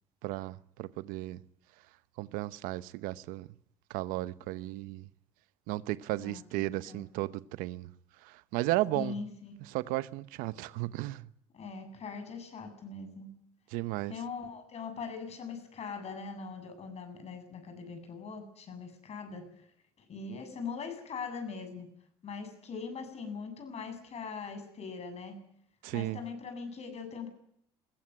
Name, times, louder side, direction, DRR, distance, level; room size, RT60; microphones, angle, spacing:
voice 1, 0.2-1.4 2.2-3.5 3.9-5.1 5.7-7.9 8.2-9.1 9.7-11.3 13.7-14.1 25.8-26.2, right 18 dB, 80° right, 1.0 m, -34 dB
voice 2, 6.2-7.0 8.9-9.7 11.5-13.3 14.1-19.7 20.1-21.9 22.2-25.4 25.9-27.3, left 5 dB, 50° left, 7.8 m, -41 dB
20.5 x 17.0 x 9.8 m
supercardioid pair, 80°, 14 cm